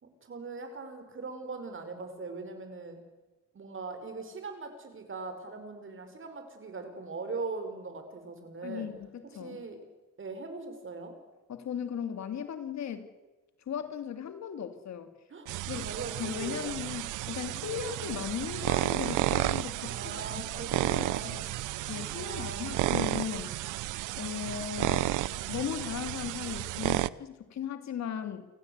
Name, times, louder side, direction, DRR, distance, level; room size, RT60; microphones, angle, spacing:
voice 1, 0.0-3.0 3.5-8.9 9.3-9.8 10.2-11.1 15.3-16.7 17.7-17.9 19.8-21.5 22.0-23.1, right 3 dB, 40° right, 7 dB, 5.7 m, -41 dB
voice 2, 8.6-9.6 11.5-13.1 13.7-15.1 15.7-15.9 16.2-20.0 20.3-21.4 21.9-23.7 24.2-25.1 25.5-28.5, left 8 dB, 65° left, 9 dB, 2.7 m, -37 dB
sound 1, 15.5-27.1, right 16 dB, 90° right, 0.7 m, -32 dB
29.5 x 15.5 x 8.3 m, 1.2 s
cardioid pair, 90°, 30 cm